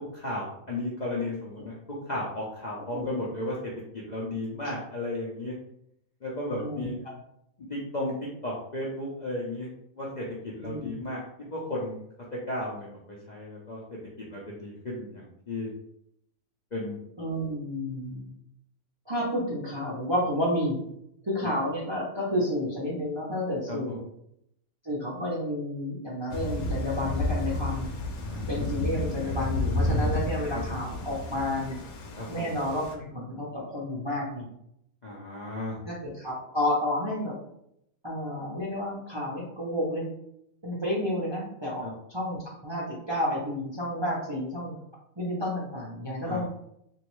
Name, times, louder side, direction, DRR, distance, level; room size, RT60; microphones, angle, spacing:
voice 1, 0.1-1.8 2.1-3.6 3.9-5.5 6.2-7.0 7.7-9.7 10.0-11.2 11.5-11.9 12.3-13.8 14.3-15.7 16.7-17.0 23.7-24.0 28.3-28.5 30.5-30.6 32.2-32.5 35.0-35.8 41.8-41.9 46.3-46.4, left 1 dB, 50° left, -6 dB, 0.5 m, -34 dB
voice 2, 6.6-6.9 10.6-11.0 17.2-18.3 19.1-20.8 21.2-24.0 24.8-27.9 28.5-31.8 32.3-34.5 35.8-37.3 38.0-40.1 40.6-44.8 45.2-46.4, left 1 dB, 30° right, -5 dB, 0.5 m, -30 dB
Thunder / Rain, 26.3-32.9, left 1 dB, 85° left, 1.1 m, -31 dB
3.0 x 2.6 x 3.0 m, 0.76 s
omnidirectional pair, 1.5 m